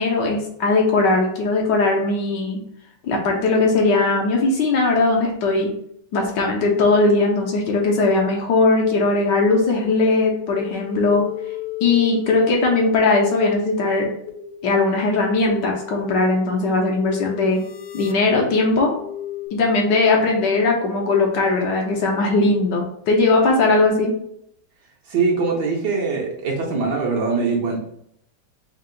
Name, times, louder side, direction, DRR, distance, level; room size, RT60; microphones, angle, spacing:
voice 1, 0.0-2.6 3.0-5.7 6.1-11.2 11.8-14.1 14.6-17.6 17.9-18.9 19.5-24.1, left 3 dB, 70° left, 0 dB, 1.3 m, -19 dB
sound 1, 10.3-19.5, left 5 dB, 85° left, 1.4 m, -33 dB
voice 2, 25.1-27.8, right 4 dB, 65° right, -2 dB, 1.2 m, -22 dB
3.7 x 2.5 x 3.7 m, 0.72 s
omnidirectional pair, 2.2 m